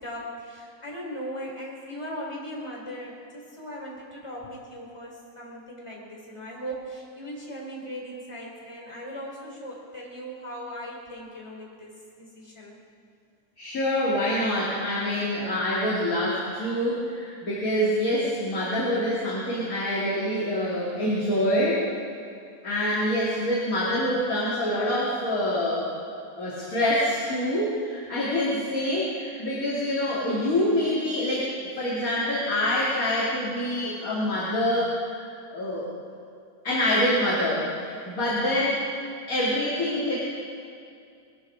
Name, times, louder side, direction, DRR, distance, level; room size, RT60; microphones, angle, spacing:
voice 1, 0.0-11.9 12.2-12.8, equal, 10° left, -3 dB, 3.1 m, -38 dB
voice 2, 13.6-21.8 22.6-25.9 26.4-35.2 35.5-35.9 36.6-38.8 39.3-40.2, left 1 dB, 30° left, -8 dB, 2.8 m, -26 dB
21.0 x 13.5 x 4.8 m, 2.4 s
omnidirectional pair, 3.5 m